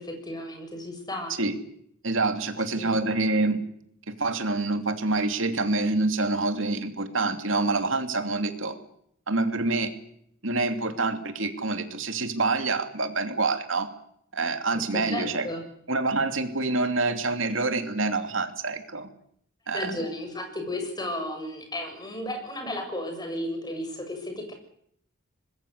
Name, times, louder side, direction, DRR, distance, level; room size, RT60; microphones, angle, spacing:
voice 1, 0.0-1.3 2.8-3.0 14.7-15.6 19.7-24.5, left 1 dB, 20° left, 5 dB, 7.2 m, -34 dB
voice 2, 2.0-3.6 4.1-8.8 9.3-9.9 10.4-13.9 14.3-15.5 15.9-19.1 19.7-19.9, right 3 dB, 65° right, 7 dB, 3.0 m, -26 dB
25.5 x 21.0 x 8.2 m, 0.69 s
head